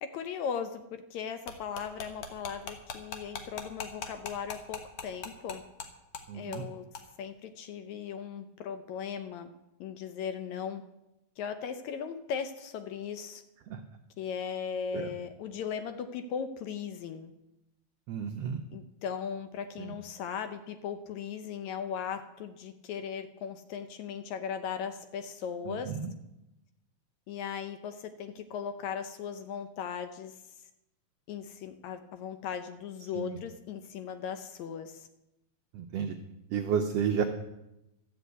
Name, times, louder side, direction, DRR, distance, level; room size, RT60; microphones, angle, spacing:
voice 1, 0.0-5.6 6.3-6.8 7.2-9.5 9.8-10.8 11.4-13.4 14.2-17.3 18.7-25.9 27.3-30.4 31.3-35.1, left 7 dB, 75° left, 9 dB, 1.8 m, -38 dB
sound 1, 1.5-5.9 6.1-6.2 6.5-6.7 6.9-7.0, left 6 dB, 60° left, 1.9 m, -39 dB
voice 2, 6.3-6.7 13.7-13.8 14.9-15.1 18.1-18.6 19.8-19.9 25.7-26.1 33.1-33.4 35.7-36.2 36.5-37.2, right 7 dB, 90° right, 5 dB, 1.4 m, -32 dB
13.0 x 6.9 x 8.1 m, 0.91 s
omnidirectional pair, 3.7 m